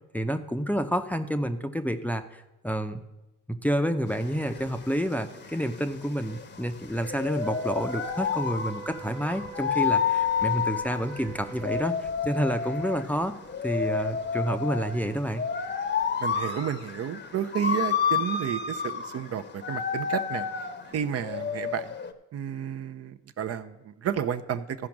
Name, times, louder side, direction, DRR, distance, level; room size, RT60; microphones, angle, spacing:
voice 1, 0.1-3.0 3.5-13.4 13.6-15.4, equal, 5° left, 6 dB, 0.6 m, -29 dB
sound 1, 4.1-22.1, left 6 dB, 35° left, 0.8 m, -30 dB
Wind instrument woodwind instrument, 7.4-12.0, right 7 dB, 90° right, 0.6 m, -44 dB
voice 2, 16.2-20.5 20.9-21.9 22.3-24.9, right 8 dB, 55° right, 9 dB, 0.6 m, -31 dB
13.5 x 5.1 x 5.9 m, 0.99 s
cardioid pair, 90°, 30 cm